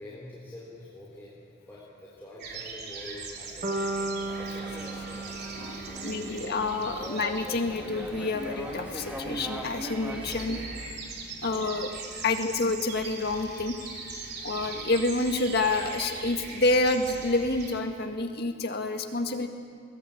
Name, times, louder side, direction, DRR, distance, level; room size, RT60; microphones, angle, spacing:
voice 1, 0.0-5.5 5.9-6.6 11.0-11.6 14.2-14.6, left 1 dB, 10° left, -5 dB, 3.8 m, -47 dB
sound 1, 2.4-17.8, right 4 dB, 55° right, 3.2 m, -41 dB
sound 2, 3.6-7.7, right 2 dB, 40° right, 2.4 m, -36 dB
sound 3, 4.3-10.9, equal, 5° right, 2.4 m, -40 dB
voice 2, 5.6-10.6 11.4-11.9 12.2-19.5, left 2 dB, 55° left, 5 dB, 1.9 m, -28 dB
22.0 x 19.5 x 8.6 m, 2.2 s
head